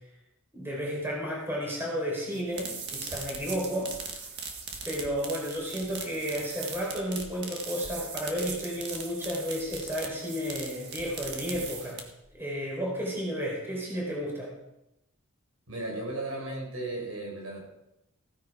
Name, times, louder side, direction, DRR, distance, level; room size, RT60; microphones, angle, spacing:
voice 1, 0.5-4.1 4.8-12.0 12.4-14.5, equal, 10° right, -3 dB, 4.3 m, -32 dB
sound 1, 2.3-12.3, right 5 dB, 50° right, 1.8 m, -39 dB
voice 2, 15.7-17.6, right 2 dB, 70° right, -2 dB, 5.4 m, -35 dB
16.0 x 10.0 x 4.8 m, 0.85 s
head